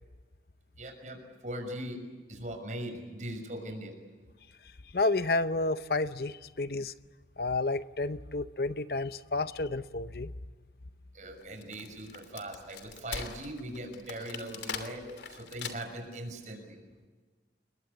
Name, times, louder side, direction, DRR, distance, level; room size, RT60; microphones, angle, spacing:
voice 1, 0.8-1.2 1.4-2.0 2.3-3.9 11.1-15.0 15.3-16.8, right 1 dB, 40° right, 5 dB, 6.1 m, -40 dB
voice 2, 4.9-6.9 7.4-10.3, left 2 dB, 55° left, 13 dB, 0.8 m, -30 dB
Wood, 11.4-16.1, left 6 dB, 75° left, 2.9 m, -42 dB
29.5 x 22.0 x 8.4 m, 1.4 s
head